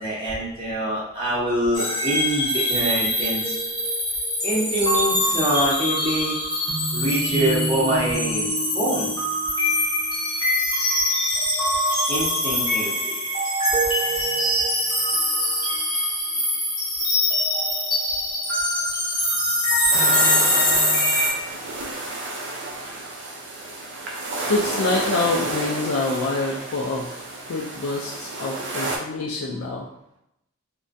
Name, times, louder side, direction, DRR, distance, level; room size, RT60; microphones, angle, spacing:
voice 1, 0.0-3.6 4.4-6.4 6.9-9.1 12.1-13.2, right 1 dB, 25° right, -7 dB, 0.7 m, -25 dB
sound 1, 1.7-21.3, equal, 20° left, 0.6 m, -23 dB
sound 2, 19.9-29.0, right 2 dB, 60° right, 0.4 m, -31 dB
voice 2, 24.5-27.2 27.5-29.9, left 3 dB, 80° left, -2 dB, 0.3 m, -26 dB
2.3 x 2.1 x 2.5 m, 0.80 s
head